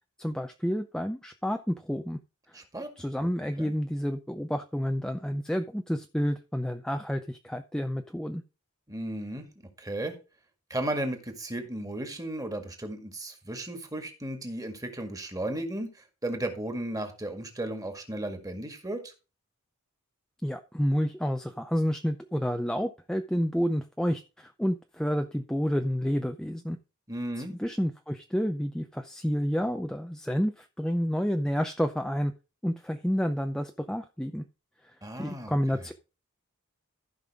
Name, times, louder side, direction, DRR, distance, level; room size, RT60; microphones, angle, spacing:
voice 1, 0.2-2.2 3.0-8.4 20.4-26.8 27.4-32.3 32.6-34.5 35.2-35.9, equal, 5° left, 6 dB, 0.5 m, -29 dB
voice 2, 2.5-2.9 3.2-3.3 3.6-3.7 8.9-9.5 9.8-10.2 10.7-15.9 16.2-19.1 27.1-27.5 35.0-35.5, right 1 dB, 15° right, 6 dB, 1.9 m, -34 dB
14.5 x 5.5 x 3.6 m, 0.30 s
head